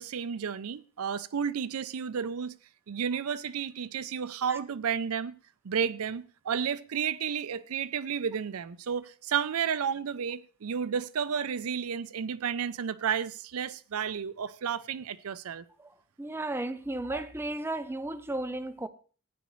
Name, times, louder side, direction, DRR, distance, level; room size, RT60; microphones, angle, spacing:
voice 1, 0.0-2.5 2.9-5.3 5.6-15.6 17.1-17.2, right 7 dB, 80° right, 0.5 m, -32 dB
voice 2, 16.2-18.9, right 2 dB, 10° right, 0.4 m, -34 dB
15.0 x 9.5 x 3.1 m
head